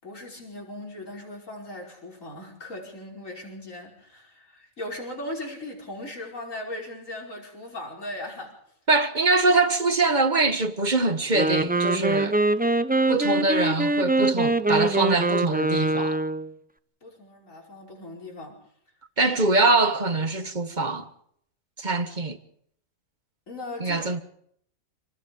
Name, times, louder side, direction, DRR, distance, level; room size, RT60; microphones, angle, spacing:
voice 1, 0.0-8.5 17.0-18.5 19.3-19.4 23.5-24.1, left 1 dB, 65° left, 5.7 m, -38 dB
voice 2, 8.9-12.4 13.1-16.2 19.2-21.1 21.8-22.4 23.8-24.2, right 3 dB, 35° right, 1.4 m, -23 dB
Wind instrument woodwind instrument, 11.2-16.5, right 2 dB, 10° right, 0.6 m, -23 dB
27.5 x 19.5 x 5.3 m
omnidirectional pair, 1.4 m